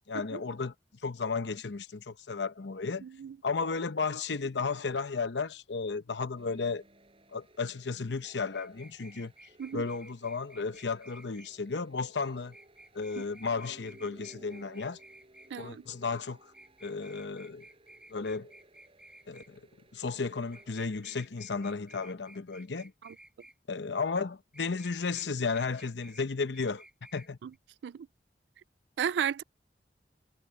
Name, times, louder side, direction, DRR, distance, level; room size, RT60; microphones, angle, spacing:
voice 1, 0.1-0.7 1.0-3.0 3.4-6.8 7.3-9.3 9.7-12.5 12.9-15.0 15.6-16.5 16.8-17.7 18.1-18.5 19.3-19.6 19.9-22.9 23.7-26.8 27.1-27.4, left 4 dB, 85° left, 0.8 m, -34 dB
voice 2, 3.0-3.4 9.6-9.8 13.2-13.3 15.5-15.8 23.0-23.1 27.4-27.5 27.8-28.1 29.0-29.4, right 8 dB, 75° right, 0.3 m, -34 dB
sound 1, 6.4-20.9, right 1 dB, 35° right, 5.7 m, -59 dB
sound 2, 8.5-11.5 12.5-15.5 16.5-19.5 20.5-23.6 24.5-25.3 25.5-26.3 26.5-27.3 27.5-27.6, right 1 dB, 5° right, 1.9 m, -55 dB
head